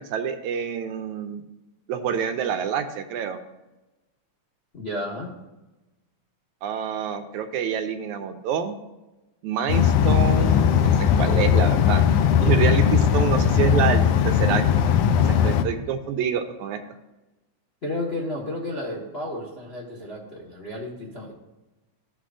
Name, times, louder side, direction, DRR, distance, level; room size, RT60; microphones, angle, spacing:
voice 1, 0.1-1.4 1.9-3.4 6.6-8.8 9.4-12.1 12.4-14.8 15.2-16.8, right 7 dB, 80° right, 7 dB, 2.1 m, -27 dB
voice 2, 4.7-5.3 17.8-21.3, left 1 dB, 40° left, -3 dB, 0.9 m, -32 dB
sound 1, 9.7-15.6, left 8 dB, 75° left, 1.5 m, -19 dB
15.0 x 6.0 x 2.5 m, 1.0 s
omnidirectional pair, 3.4 m